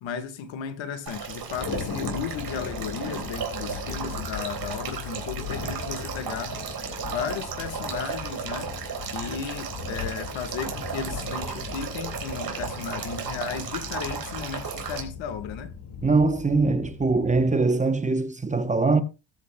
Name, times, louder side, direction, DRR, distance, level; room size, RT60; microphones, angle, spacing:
voice 1, 0.0-6.6 7.1-8.7 9.1-15.7, left 7 dB, 80° left, 1.6 m, -34 dB
Male speech man speaking / Stream / Trickle dribble, 1.1-15.0, right 7 dB, 50° right, 3.7 m, -35 dB
Thunder, 1.5-17.6, left 6 dB, 60° left, 2.1 m, -38 dB
voice 2, 16.0-19.0, right 3 dB, 15° right, 0.8 m, -22 dB
20.0 x 8.5 x 2.2 m
cardioid pair, 140°, 45 cm